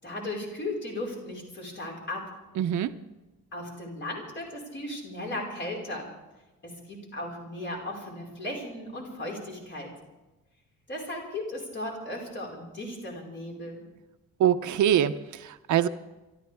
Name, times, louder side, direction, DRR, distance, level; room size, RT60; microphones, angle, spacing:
voice 1, 0.0-2.3 3.5-6.1 6.6-9.9 10.9-13.8, left 1 dB, 35° left, -1 dB, 5.1 m, -36 dB
voice 2, 2.6-2.9 14.4-15.9, right 10 dB, 65° right, 11 dB, 0.7 m, -24 dB
27.5 x 13.5 x 3.6 m, 1.1 s
cardioid pair, 180°, 32 cm